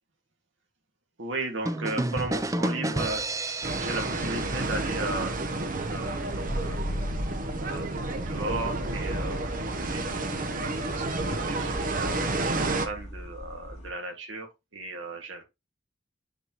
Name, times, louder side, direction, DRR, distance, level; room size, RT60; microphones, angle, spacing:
voice 1, 1.2-5.4 5.9-6.8 7.6-12.4 12.6-15.4, right 2 dB, 75° right, 1.9 m, -36 dB
sound 1, 1.7-5.4, right 1 dB, 15° right, 0.5 m, -31 dB
sound 2, 3.6-12.9, right 2 dB, 45° right, 0.9 m, -30 dB
sound 3, 6.5-13.9, equal, 35° left, 2.8 m, -38 dB
9.8 x 4.3 x 3.0 m
head